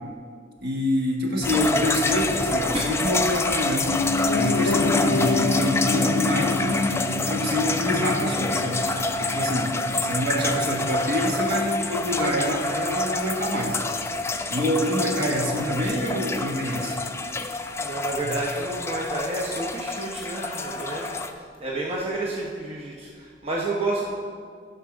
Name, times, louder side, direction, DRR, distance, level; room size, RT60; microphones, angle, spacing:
voice 1, 0.6-3.9 4.3-8.8 9.2-9.7 10.0-13.8 14.5-17.0 18.2-18.4, left 1 dB, 60° right, 0 dB, 1.5 m, -26 dB
sound 1, 1.4-21.3, left 2 dB, 15° left, 0.3 m, -28 dB
Piano, 3.9-13.9 14.2-14.3, left 3 dB, 85° left, 0.5 m, -29 dB
sound 2, 14.8-15.0 15.5-15.8 16.7-17.1 17.7-18.3 18.9-19.7 20.3-21.3 21.9-22.2, left 3 dB, 40° left, 0.7 m, -43 dB
voice 2, 17.8-21.2 21.6-24.1, right 2 dB, 30° right, -4 dB, 0.9 m, -30 dB
11.0 x 4.6 x 6.2 m, 2.1 s
head